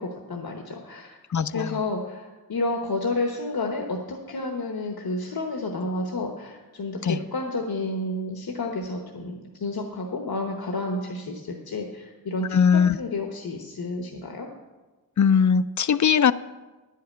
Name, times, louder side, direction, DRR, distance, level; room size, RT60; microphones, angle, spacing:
voice 1, 0.0-1.2 1.5-14.5, left 2 dB, 80° left, 2 dB, 1.1 m, -30 dB
voice 2, 1.3-1.8 7.0-7.2 12.5-13.0 15.2-16.3, left 7 dB, 55° left, 15 dB, 0.4 m, -20 dB
10.0 x 5.7 x 8.6 m, 1.2 s
wide cardioid pair, 60°, 36 cm